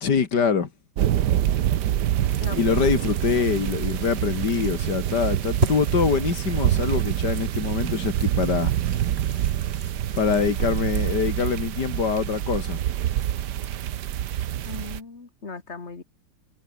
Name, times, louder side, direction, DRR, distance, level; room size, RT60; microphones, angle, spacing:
voice 1, 0.0-0.7 2.5-8.7 10.2-12.8, left 6 dB, 90° left, 2.7 m, -24 dB
sound 1, 1.0-15.0, right 11 dB, 85° right, 1.5 m, -26 dB
sound 2, 2.2-10.7, right 2 dB, 35° right, 4.3 m, -36 dB
voice 2, 2.4-3.0 14.6-16.0, left 4 dB, 40° left, 2.8 m, -38 dB
omnidirectional pair, 1.8 m